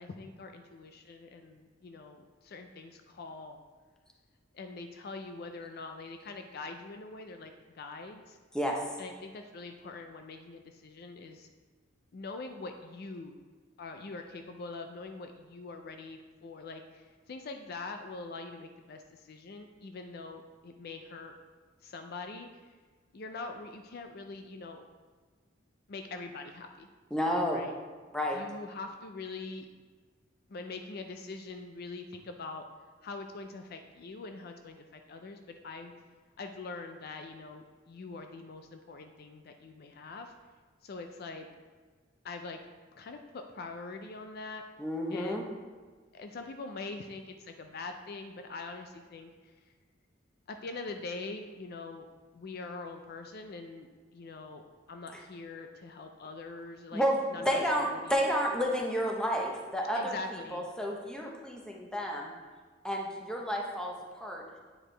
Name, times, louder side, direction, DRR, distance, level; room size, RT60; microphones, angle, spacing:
voice 1, 0.0-3.6 4.5-8.4 9.0-11.5 12.1-13.4 13.8-21.3 21.8-22.8 23.1-24.8 25.9-26.9 27.5-27.7 28.3-29.7 30.5-32.6 33.0-35.9 36.4-40.3 40.8-41.5 42.2-42.6 42.9-44.6 45.1-45.5 46.1-49.7 50.5-52.1 52.3-54.6 54.9-57.0 57.3-58.1 59.9-60.7, left 3 dB, 50° left, 6 dB, 0.4 m, -43 dB
voice 2, 8.5-8.9 27.1-27.6 28.1-28.4 44.8-45.4 56.9-60.1 60.5-62.3 62.8-64.6, equal, 5° left, -1 dB, 0.8 m, -31 dB
8.6 x 4.8 x 3.3 m, 1.4 s
head